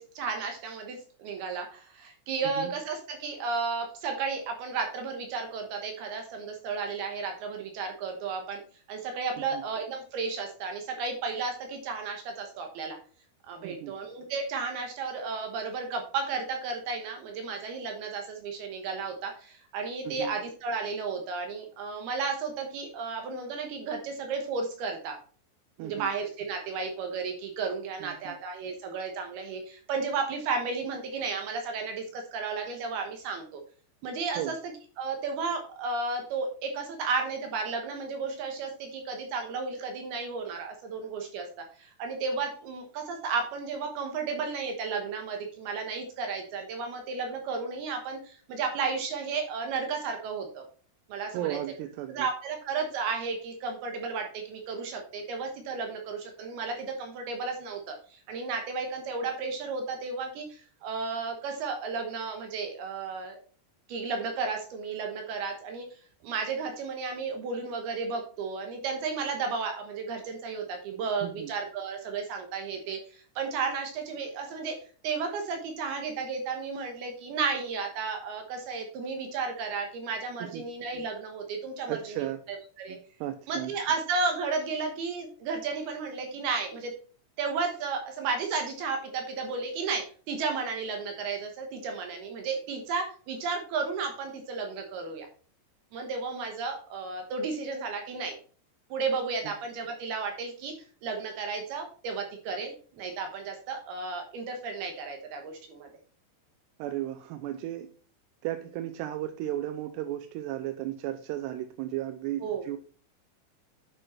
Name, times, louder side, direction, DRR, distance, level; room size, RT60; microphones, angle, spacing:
voice 1, 0.0-8.6 8.9-13.0 13.5-25.2 25.8-33.6 34.0-41.5 41.8-50.6 51.1-51.6 52.1-63.4 63.9-65.9 66.2-74.8 75.0-83.0 83.5-86.9 87.4-95.3 95.9-98.4 98.9-100.7 101.0-105.9 112.4-112.7, right 4 dB, 70° right, 4 dB, 3.0 m, -33 dB
voice 2, 13.6-14.0 20.1-20.4 25.8-26.1 28.0-28.4 34.4-34.5 51.3-52.3 71.2-71.5 80.4-80.6 81.9-82.4 82.9-83.7 99.4-99.5 106.8-107.9 108.4-112.8, right 13 dB, 90° right, 8 dB, 2.8 m, -35 dB
9.2 x 6.4 x 4.3 m, 0.42 s
omnidirectional pair, 4.8 m